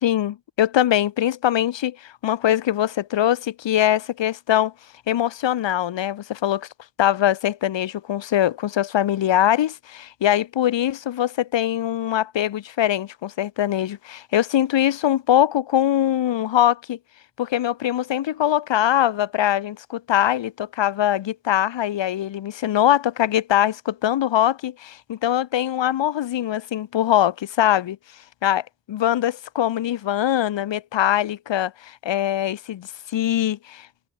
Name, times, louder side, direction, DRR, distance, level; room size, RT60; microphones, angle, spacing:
voice 1, 0.0-4.7 5.1-6.7 7.0-17.0 17.4-28.0 28.4-33.9, left 11 dB, 85° left, 0.8 m, -22 dB
cardioid pair, 45°, 43 cm